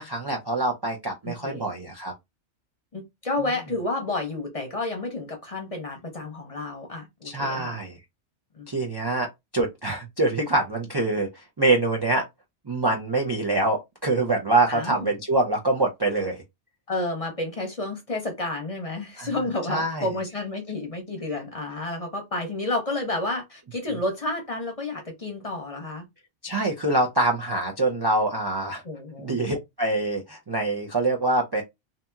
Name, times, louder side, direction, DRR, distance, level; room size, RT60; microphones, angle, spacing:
voice 1, 0.0-2.1 7.2-8.0 8.7-12.3 12.7-16.4 19.2-19.3 19.7-20.1 26.4-28.8 29.2-31.6, right 2 dB, 40° right, 0.3 m, -25 dB
voice 2, 1.2-1.6 2.9-7.8 8.5-8.7 14.7-15.1 16.9-26.0 28.8-29.4, left 2 dB, 35° left, 0.7 m, -30 dB
2.8 x 2.6 x 2.3 m
omnidirectional pair, 1.2 m